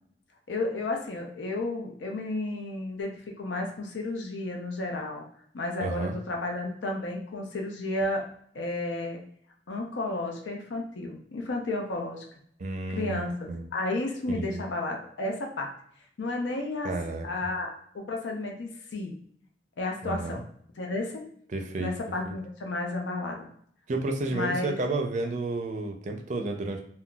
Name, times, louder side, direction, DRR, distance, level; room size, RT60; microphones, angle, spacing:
voice 1, 0.5-3.1 3.4-5.3 5.5-8.2 8.5-9.2 9.7-12.2 12.9-15.7 16.2-16.9 17.2-19.1 19.8-20.4 20.8-21.3 21.8-23.5 24.3-24.7, left 2 dB, 90° left, 1 dB, 0.6 m, -32 dB
voice 2, 5.8-6.2 12.6-13.2 13.5-13.6 14.3-14.6 16.8-17.3 20.0-20.4 21.5-21.9 22.3-22.4 23.9-26.8, right 2 dB, 40° right, 4 dB, 0.4 m, -31 dB
3.7 x 2.2 x 2.3 m, 0.62 s
head